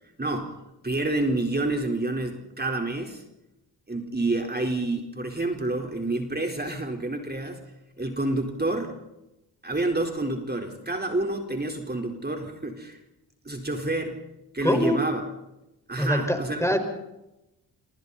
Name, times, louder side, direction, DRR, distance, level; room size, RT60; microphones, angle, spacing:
voice 1, 0.2-0.6 0.8-3.2 3.9-7.6 8.0-9.0 9.6-13.0 13.4-14.2 14.5-15.2 15.9-16.6, right 2 dB, 20° right, 2 dB, 4.2 m, -28 dB
voice 2, 14.6-15.0 16.0-16.8, equal, 5° left, 6 dB, 4.9 m, -24 dB
26.5 x 24.0 x 4.2 m, 0.92 s
supercardioid pair, 45°, 45 cm